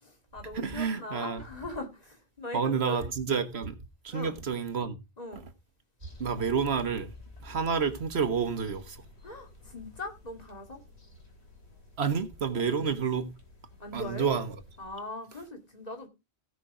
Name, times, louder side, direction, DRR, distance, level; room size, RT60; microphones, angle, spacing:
voice 1, 0.0-3.1 4.1-4.4 5.2-5.4 9.2-10.8 12.7-12.8 13.8-14.3 14.8-16.1, left 2 dB, 40° left, 2.6 m, -40 dB
voice 2, 0.5-1.4 2.5-3.8 4.0-5.0 5.3-5.4 6.2-7.1 7.4-9.0 12.0-13.3 13.9-14.6, right 6 dB, 75° right, 1.5 m, -29 dB
sound 1, 6.0-14.9, left 3 dB, 90° left, 3.3 m, -52 dB
16.0 x 5.7 x 4.9 m
omnidirectional pair, 1.1 m